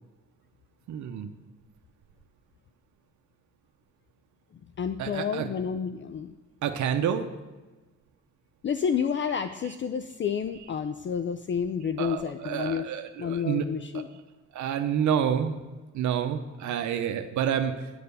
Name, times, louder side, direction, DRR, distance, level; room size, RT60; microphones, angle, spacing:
voice 1, 0.9-1.3 5.0-5.5 6.6-7.3 12.0-13.7 13.9-14.0 14.5-15.6 15.9-17.9, right 8 dB, 70° right, 7 dB, 0.8 m, -28 dB
voice 2, 4.8-6.3 8.6-12.9 13.2-14.1, left 7 dB, 40° left, 10 dB, 0.5 m, -30 dB
10.0 x 6.7 x 6.8 m, 1.2 s
cardioid pair, 90°, 30 cm